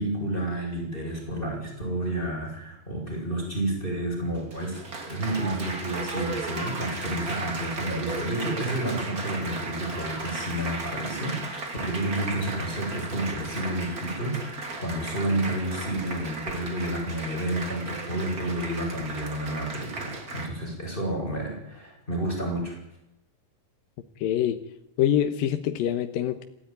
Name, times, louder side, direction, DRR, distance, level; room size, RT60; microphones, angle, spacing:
voice 1, 0.0-4.8 5.1-22.8, right 1 dB, 15° left, 0 dB, 8.2 m, -30 dB
Applause, 4.3-20.5, right 3 dB, 25° right, 2.9 m, -35 dB
voice 2, 24.2-24.6 25.0-26.4, left 10 dB, 75° left, 7 dB, 2.8 m, -25 dB
27.0 x 16.0 x 9.6 m, 0.80 s
omnidirectional pair, 4.1 m